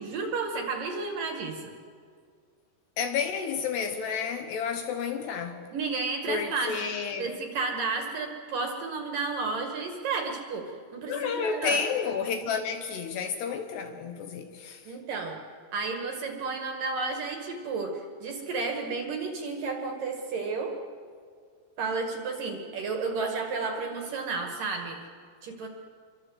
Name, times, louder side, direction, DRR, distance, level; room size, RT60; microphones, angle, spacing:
voice 1, 0.0-1.6 5.7-6.9 7.2-11.8 14.9-15.4 15.7-20.8 21.8-25.0 25.4-25.7, right 4 dB, 55° right, 3.0 m, -32 dB
voice 2, 3.0-5.7 6.3-7.3 11.1-15.0, left 6 dB, 70° left, 3.0 m, -31 dB
26.5 x 24.0 x 8.0 m
omnidirectional pair, 5.6 m